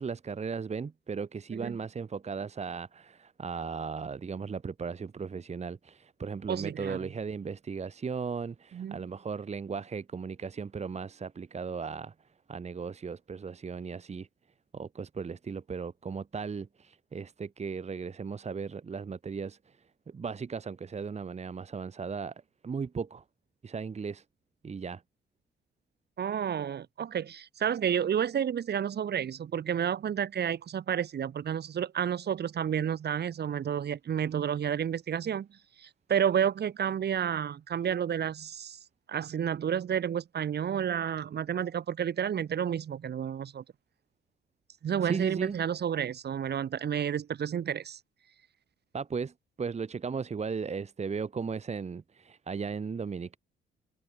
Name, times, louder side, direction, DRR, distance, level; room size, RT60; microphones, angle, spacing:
voice 1, 0.0-12.1 12.5-14.3 14.7-19.6 20.1-22.3 22.6-23.2 23.6-24.2 24.6-25.0 45.0-45.6 48.9-49.3 49.6-53.4, right 5 dB, 35° right, 1.6 m, -36 dB
voice 2, 6.5-7.1 8.7-9.1 26.2-38.8 39.1-43.6 44.8-48.0, right 8 dB, 55° right, 2.8 m, -31 dB
cardioid pair, 90°, 20 cm